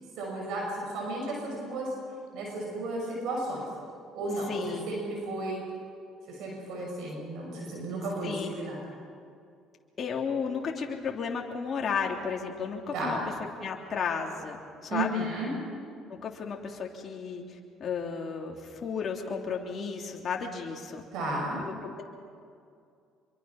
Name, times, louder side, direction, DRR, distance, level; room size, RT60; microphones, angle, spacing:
voice 1, 0.2-1.9 2.3-3.6 4.1-5.6 6.3-8.8 12.9-13.2 14.9-15.5 21.1-21.6, right 2 dB, 75° right, -1 dB, 6.5 m, -33 dB
voice 2, 4.5-5.0 8.2-8.5 10.0-13.2 13.6-15.3 16.1-21.0 21.6-22.0, left 6 dB, 45° left, 0 dB, 3.0 m, -33 dB
25.5 x 23.5 x 5.9 m, 2.4 s
supercardioid pair, 75°, 0 cm